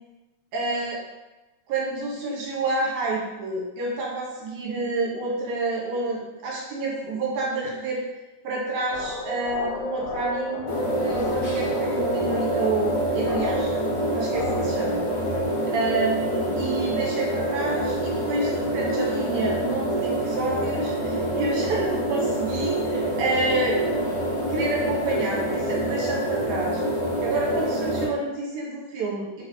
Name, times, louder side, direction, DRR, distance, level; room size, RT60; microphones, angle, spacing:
voice 1, 0.5-1.0 1.7-8.0 8.4-13.8 14.1-15.0 15.7-23.8 24.5-26.8 27.2-29.4, right 2 dB, 75° right, -4 dB, 2.4 m, -29 dB
sound 1, 8.9-15.4, left 2 dB, 80° left, 1.9 m, -32 dB
sound 2, 10.7-28.0, right 1 dB, 50° left, 1.8 m, -26 dB
4.4 x 4.0 x 2.7 m, 1.1 s
omnidirectional pair, 3.6 m